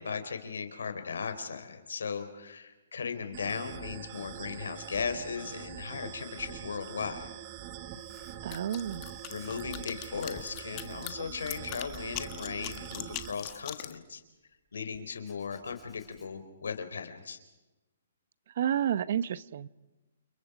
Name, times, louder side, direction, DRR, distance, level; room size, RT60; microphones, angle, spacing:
voice 1, 0.0-7.3 9.3-14.2 14.7-17.4, left 5 dB, 85° left, 9 dB, 4.1 m, -37 dB
sound 1, 3.3-13.3, right 10 dB, 30° right, 1.7 m, -44 dB
Writing, 7.7-8.8 9.0-9.9 10.1-14.3 14.9-16.6, left 4 dB, 10° left, 3.6 m, -57 dB
voice 2, 8.4-9.1 18.6-19.7, right 10 dB, 55° right, 18 dB, 0.9 m, -30 dB
sound 2, 8.5-14.0, left 18 dB, 30° left, 1.5 m, -41 dB
29.5 x 29.5 x 5.1 m, 1.1 s
hypercardioid pair, 155°, 0 cm